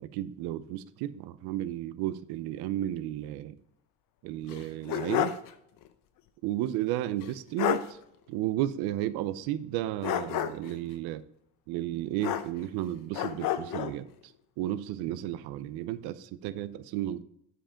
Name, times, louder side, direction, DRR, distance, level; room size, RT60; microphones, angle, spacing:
voice 1, 0.0-3.6 4.2-5.3 6.4-8.0 8.3-11.2 11.7-14.1 14.6-17.2, right 13 dB, 70° right, 12 dB, 0.7 m, -33 dB
sound 1, 4.5-5.5 5.8-5.9 7.2-7.3 7.6-7.9 10.0-10.8 12.2-12.8 13.1-14.0, left 11 dB, 55° left, 0.7 m, -30 dB
10.0 x 5.2 x 5.0 m, 0.74 s
cardioid pair, 175°, 39 cm